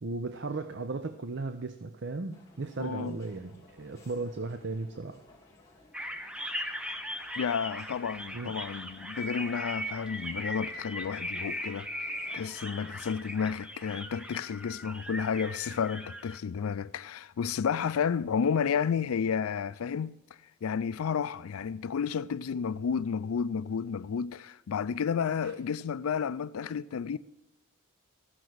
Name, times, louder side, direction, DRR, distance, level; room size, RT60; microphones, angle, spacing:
voice 1, 0.0-5.2 8.3-8.6, right 3 dB, 55° right, 0.6 m, -36 dB
sound 1, 2.3-13.4, left 2 dB, 15° left, 1.5 m, -58 dB
voice 2, 2.8-3.2 7.4-11.9 12.3-20.2 20.6-27.2, left 6 dB, 85° left, 0.4 m, -31 dB
sound 2, 5.9-16.4, equal, 5° right, 0.6 m, -39 dB
14.0 x 6.0 x 7.9 m
head